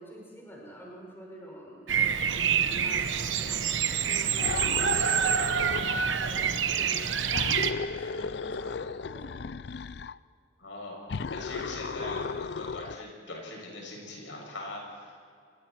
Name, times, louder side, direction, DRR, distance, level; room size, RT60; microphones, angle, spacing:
voice 1, 0.0-9.4, equal, 10° left, -3 dB, 5.9 m, -47 dB
Bird vocalization bird call bird song, 1.9-7.7, right 7 dB, 80° right, 1.0 m, -27 dB
sound 1, 4.4-6.2 7.3-10.2 11.1-13.1, left 5 dB, 60° left, 0.4 m, -35 dB
voice 2, 10.6-11.0 11.3-15.2, left 2 dB, 80° left, -1 dB, 7.3 m, -41 dB
28.5 x 23.5 x 4.6 m, 2.2 s
head